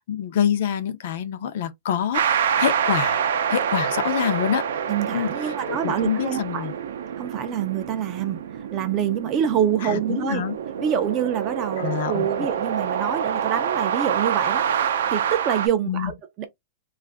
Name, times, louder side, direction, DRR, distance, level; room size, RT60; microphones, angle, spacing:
voice 1, 0.0-3.2 3.5-4.7 5.1-6.7 9.8-10.6 11.8-12.3 15.9-16.1, left 9 dB, 50° left, 0.5 m, -26 dB
sound 1, 2.1-15.7, right 8 dB, 75° right, 0.5 m, -26 dB
voice 2, 4.9-6.7 7.2-8.4 8.7-10.4 10.8-16.5, right 9 dB, 25° right, 0.4 m, -26 dB
2.5 x 2.4 x 3.3 m
supercardioid pair, 175°, 0 cm